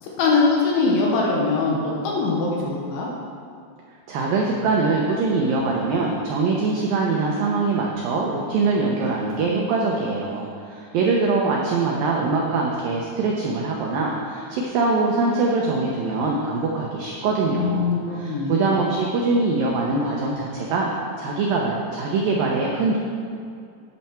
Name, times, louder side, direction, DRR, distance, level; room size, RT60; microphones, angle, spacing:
voice 1, 0.0-3.1 17.5-18.6, left 4 dB, 80° left, -3 dB, 3.6 m, -22 dB
voice 2, 4.1-20.9 21.2-23.0, right 3 dB, 85° right, -2 dB, 2.0 m, -23 dB
10.5 x 9.2 x 4.4 m, 2.4 s
omnidirectional pair, 5.4 m